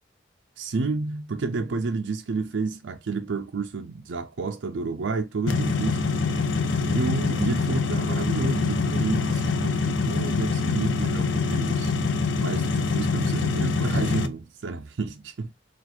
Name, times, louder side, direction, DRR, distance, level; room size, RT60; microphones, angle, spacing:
voice 1, 0.6-6.1 6.8-11.9 12.4-15.5, right 4 dB, 85° right, 0.5 m, -30 dB
sound 1, 5.5-14.3, left 4 dB, 80° left, 0.6 m, -25 dB
4.1 x 2.4 x 4.3 m
head